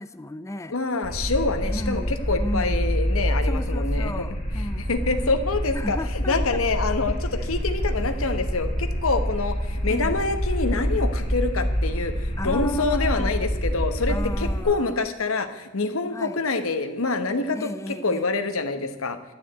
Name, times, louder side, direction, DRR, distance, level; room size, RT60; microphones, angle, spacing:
voice 1, 0.0-0.8 1.6-3.0 3.4-4.9 5.7-6.6 9.9-10.2 12.4-13.5 14.1-15.0 16.1-16.4 17.5-18.3, left 1 dB, 15° left, 13 dB, 0.4 m, -34 dB
voice 2, 0.7-4.3 4.9-19.2, left 3 dB, 90° left, 9 dB, 1.2 m, -26 dB
sound 1, 1.0-14.6, equal, 35° left, 4.3 m, -26 dB
12.0 x 7.1 x 8.1 m, 1.1 s
head